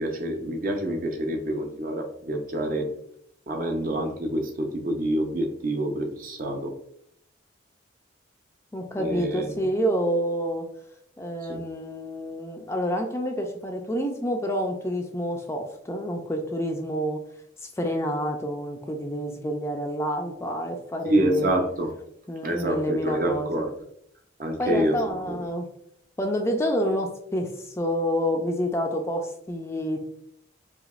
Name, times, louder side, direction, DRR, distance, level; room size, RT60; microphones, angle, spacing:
voice 1, 0.0-2.9 3.5-6.7 9.0-9.5 11.5-11.6 21.0-21.9 22.4-23.7 24.4-25.0 25.3-25.4, right 1 dB, 45° right, 4 dB, 0.6 m, -27 dB
voice 2, 8.7-10.6 11.2-17.2 17.6-21.5 22.3-23.6 24.6-25.7 26.2-30.0, equal, 15° left, 3 dB, 0.3 m, -28 dB
5.0 x 2.8 x 2.4 m, 0.70 s
head